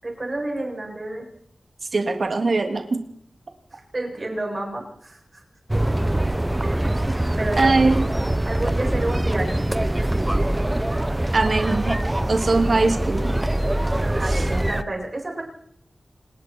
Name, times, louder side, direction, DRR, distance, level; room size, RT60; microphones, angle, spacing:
voice 1, 0.0-1.2 3.7-5.4 5.7-5.8 7.4-7.8 8.4-9.8 14.0-15.4, right 2 dB, 40° right, 0 dB, 7.9 m, -30 dB
voice 2, 1.9-3.0 7.6-8.1 11.3-12.0 12.3-13.3 14.3-14.4, right 3 dB, 65° right, 5 dB, 2.8 m, -21 dB
sound 1, 5.7-14.8, right 1 dB, 20° right, 0.9 m, -23 dB
28.0 x 20.5 x 4.6 m, 0.66 s
wide cardioid pair, 85°, 0 cm